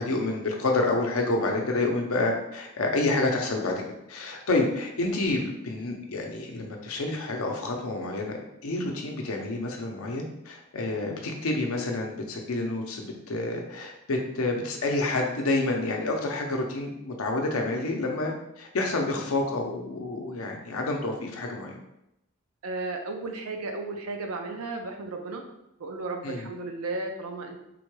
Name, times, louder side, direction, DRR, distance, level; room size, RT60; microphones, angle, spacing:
voice 1, 0.0-3.8 4.1-21.7 26.2-26.4, left 2 dB, 70° left, 2 dB, 0.6 m, -28 dB
voice 2, 22.6-25.4 25.8-27.6, right 3 dB, 80° right, 3 dB, 0.5 m, -34 dB
3.7 x 2.2 x 3.1 m, 0.84 s
head